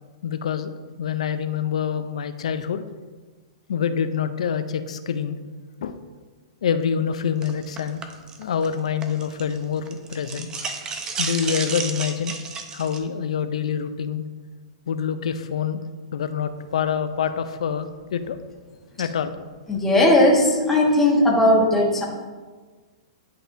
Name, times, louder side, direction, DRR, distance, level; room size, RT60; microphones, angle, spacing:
voice 1, 0.2-2.8 3.7-5.4 5.8-6.0 6.6-8.0 8.4-10.5 11.2-12.3 12.7-14.3 14.9-15.8 16.1-18.4 19.0-19.4, left 7 dB, 75° left, 11 dB, 0.4 m, -26 dB
sound 1, 7.4-9.6 9.9-13.0, right 5 dB, 20° right, 0.6 m, -31 dB
voice 2, 19.7-22.0, left 1 dB, 5° left, -3 dB, 1.2 m, -17 dB
10.5 x 4.2 x 2.6 m, 1.4 s
hypercardioid pair, 135°, 3 cm